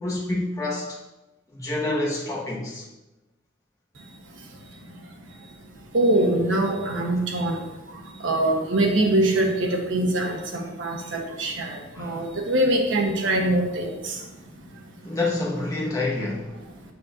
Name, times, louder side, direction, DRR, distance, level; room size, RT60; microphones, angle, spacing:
voice 1, 0.0-1.0 1.5-2.9 11.9-12.2 15.0-16.5, left 2 dB, 15° left, 1.5 m, -27 dB
voice 2, 5.9-7.5 8.2-13.9, right 1 dB, 85° right, 1.2 m, -23 dB
7.5 x 7.1 x 2.6 m
head